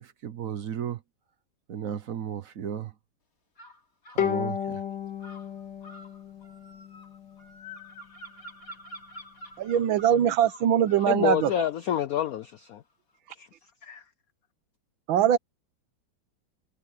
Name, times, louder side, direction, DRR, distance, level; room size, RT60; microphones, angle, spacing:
voice 1, 0.0-1.0 1.7-2.9 4.1-4.8, right 9 dB, 55° right, 1.0 m, -34 dB
sound 1, 3.6-4.3 5.2-11.7, left 1 dB, 40° left, 3.3 m, -47 dB
Bowed string instrument, 4.2-7.5, left 8 dB, 60° left, 2.2 m, -33 dB
voice 2, 9.6-11.5 15.1-15.4, right 10 dB, 75° right, 1.6 m, -22 dB
voice 3, 11.1-12.8 13.4-13.5 13.8-14.0, left 11 dB, 85° left, 0.8 m, -28 dB
omnidirectional pair, 2.2 m